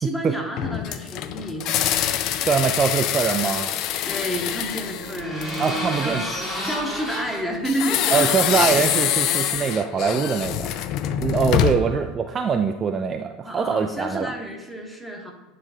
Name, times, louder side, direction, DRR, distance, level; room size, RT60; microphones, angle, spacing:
voice 1, 0.0-2.5 4.0-5.6 6.0-8.8 11.5-12.1 13.4-15.3, equal, 5° left, 1 dB, 1.2 m, -31 dB
sound 1, 0.6-5.9 7.6-12.0, left 11 dB, 50° left, 0.3 m, -25 dB
voice 2, 2.5-3.7 5.6-6.2 8.1-10.7 11.2-14.3, right 6 dB, 30° right, 5 dB, 0.4 m, -23 dB
sound 2, 3.8-8.8, left 1 dB, 25° left, 1.8 m, -33 dB
8.7 x 3.2 x 3.7 m, 1.3 s
figure-of-eight pair, 75°, 0 cm